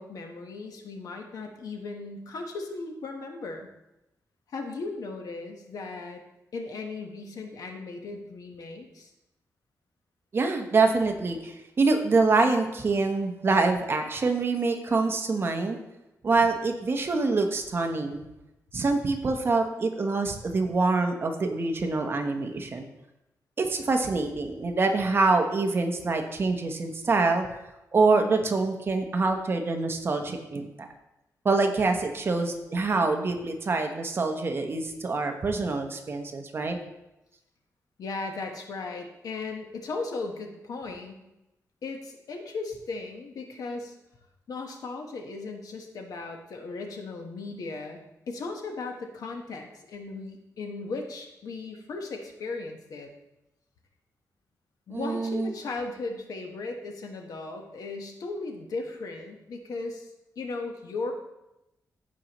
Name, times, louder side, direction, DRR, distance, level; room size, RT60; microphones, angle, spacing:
voice 1, 0.0-3.7 4.5-6.2 6.5-9.1 38.0-41.2 41.8-43.9 44.5-53.1 54.9-60.1 60.4-61.1, left 3 dB, 80° left, 3 dB, 1.3 m, -37 dB
voice 2, 10.3-15.8 16.2-18.2 18.7-22.8 23.6-27.6 27.9-30.9 31.4-36.8 54.9-55.5, right 3 dB, 40° right, 5 dB, 0.9 m, -25 dB
14.5 x 5.2 x 3.0 m, 0.92 s
wide cardioid pair, 150°, 6 cm